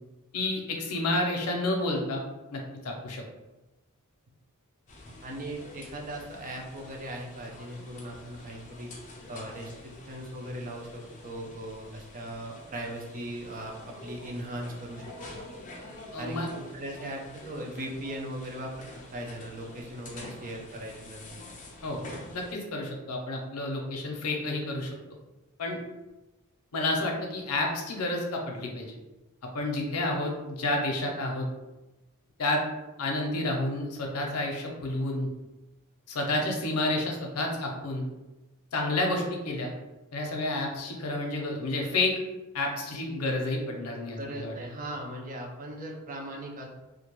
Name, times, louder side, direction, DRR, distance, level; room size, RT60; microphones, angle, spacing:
voice 1, 0.3-2.2 2.5-3.2 16.1-16.5 21.8-22.0 22.3-24.9 25.6-25.8 26.7-28.9 29.5-31.5 32.4-32.6 33.0-35.3 36.1-38.0 38.7-39.7 40.1-42.1 42.5-44.5, left 2 dB, 85° left, 1 dB, 0.6 m, -30 dB
sound 1, 4.9-22.5, left 1 dB, 35° left, 0.4 m, -47 dB
voice 2, 5.2-8.9 9.3-15.4 16.2-21.4 44.2-46.7, right 1 dB, 40° right, 0 dB, 0.4 m, -39 dB
2.4 x 2.2 x 2.9 m, 1.1 s
head